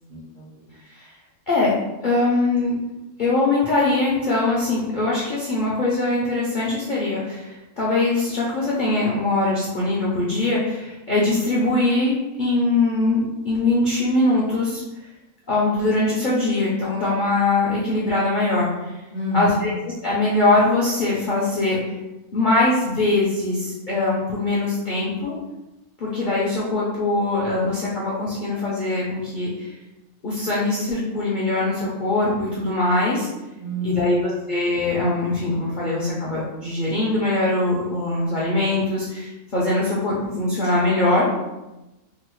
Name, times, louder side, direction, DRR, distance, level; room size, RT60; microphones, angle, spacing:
voice 1, 0.1-0.5 19.1-19.6 33.6-34.4, equal, 50° right, -7 dB, 0.5 m, -27 dB
voice 2, 1.5-1.8 2.0-2.8 3.2-13.2 13.4-15.1 15.5-19.0 19.3-19.7 20.0-22.0 22.3-25.3 26.0-29.7 30.2-33.3 33.8-41.3, left 2 dB, 60° left, -6 dB, 0.5 m, -22 dB
3.7 x 2.0 x 3.0 m, 1.0 s
omnidirectional pair, 1.5 m